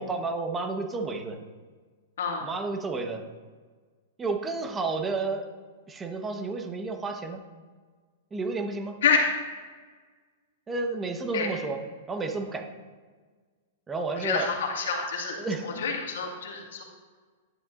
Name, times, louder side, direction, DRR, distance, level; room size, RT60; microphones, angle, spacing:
voice 1, 0.0-1.4 2.4-3.2 4.2-5.4 5.9-7.4 8.3-8.9 10.7-11.8 12.1-12.6 13.9-14.5 15.4-15.7, right 3 dB, 15° right, 4 dB, 1.1 m, -31 dB
voice 2, 14.2-15.4 15.6-16.8, left 5 dB, 75° left, 1 dB, 1.9 m, -27 dB
11.0 x 10.0 x 2.6 m, 1.5 s
hypercardioid pair, 130°, 0 cm